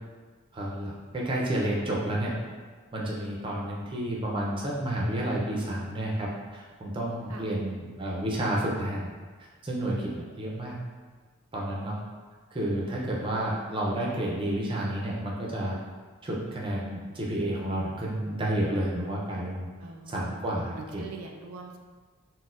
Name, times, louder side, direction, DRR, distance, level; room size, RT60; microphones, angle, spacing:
voice 1, 0.5-2.3 2.9-9.1 9.6-10.8 11.5-12.0 12.5-15.8 16.2-19.7 20.1-21.1, right 1 dB, 25° right, -4 dB, 0.5 m, -30 dB
voice 2, 19.8-20.3 20.8-21.8, right 4 dB, 90° right, 2 dB, 0.3 m, -42 dB
4.0 x 2.1 x 2.4 m, 1.5 s
head